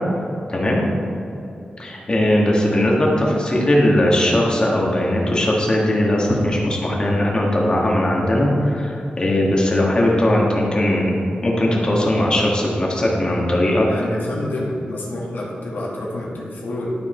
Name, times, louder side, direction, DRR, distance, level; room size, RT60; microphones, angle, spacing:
voice 1, 0.5-0.8 1.8-11.1 11.4-13.9, left 1 dB, 30° left, -3 dB, 1.7 m, -19 dB
voice 2, 13.9-16.9, left 1 dB, 85° left, -5 dB, 1.8 m, -28 dB
12.0 x 4.9 x 4.4 m, 2.7 s
wide cardioid pair, 150°, 3 cm